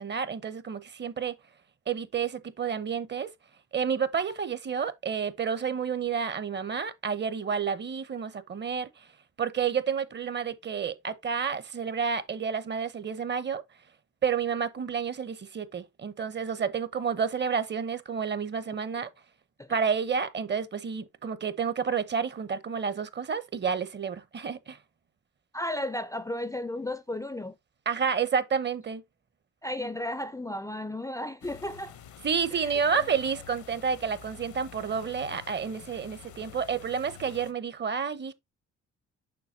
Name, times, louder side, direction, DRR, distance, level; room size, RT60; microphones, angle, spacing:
voice 1, 0.0-1.3 1.9-3.3 3.7-8.9 9.4-13.6 14.2-19.1 19.7-24.8 27.9-29.0 32.2-38.3, right 6 dB, 35° right, 0.8 m, -30 dB
voice 2, 25.5-27.6 29.6-32.0 32.5-33.2, left 1 dB, 10° left, 0.5 m, -34 dB
sound 1, 31.4-37.5, left 9 dB, 75° left, 1.0 m, -48 dB
7.0 x 5.6 x 2.7 m
cardioid pair, 90°, 30 cm